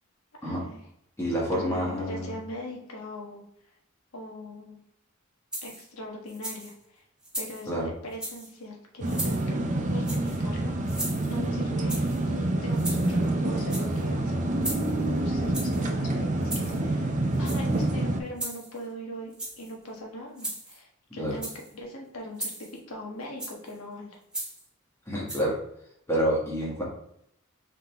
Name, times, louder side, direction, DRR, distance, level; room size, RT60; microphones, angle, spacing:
voice 1, 0.4-0.8 1.5-3.4 4.1-4.8 5.6-7.0 7.3-12.0 12.3-14.8 15.1-21.5 21.7-24.2, equal, 85° left, -1 dB, 1.2 m, -41 dB
voice 2, 1.2-2.3 7.7-7.9 21.2-21.3 25.1-25.5 26.1-26.8, equal, 15° left, -5 dB, 1.5 m, -28 dB
sound 1, 5.5-5.9 6.3-6.7 7.2-7.7 8.1-8.5 9.0-9.4 10.0-10.4 10.8-11.4 11.9-12.2 12.7-13.2 13.6-14.0 14.6-15.0 15.5-15.8 16.4-16.8 17.3-17.8 18.4-18.8 19.3-19.7 20.4-20.8 21.3-21.7 22.4-22.8 23.4-23.7 24.3-24.6 25.3-25.4, right 1 dB, 5° right, 1.0 m, -37 dB
sound 2, 9.0-18.2, right 1 dB, 35° right, 0.5 m, -27 dB
3.8 x 3.7 x 3.3 m, 0.74 s
head